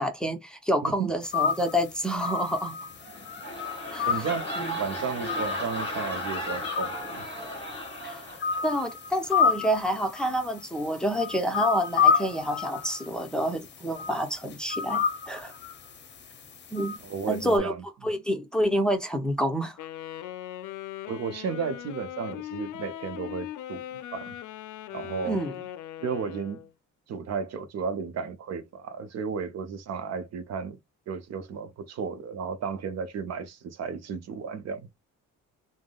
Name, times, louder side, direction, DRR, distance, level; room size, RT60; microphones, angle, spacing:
voice 1, 0.0-2.8 3.9-4.3 4.6-4.8 8.0-8.2 8.6-15.5 16.7-16.9 17.3-17.7 18.0-19.8 25.3-25.5, equal, 5° left, 0.6 m, -28 dB
sound 1, 1.2-17.6, left 6 dB, 35° left, 0.7 m, -31 dB
sound 2, 2.9-8.9 9.2-9.5, equal, 20° left, 1.5 m, -35 dB
voice 2, 4.0-4.5 4.8-7.3 17.0-17.8 21.1-24.3 24.9-25.4 26.0-26.6 27.1-30.8 31.1-34.9, right 6 dB, 60° right, 0.6 m, -33 dB
Wind instrument woodwind instrument, 19.8-26.7, left 12 dB, 80° left, 0.5 m, -39 dB
3.5 x 2.0 x 2.2 m
cardioid pair, 90°, 30 cm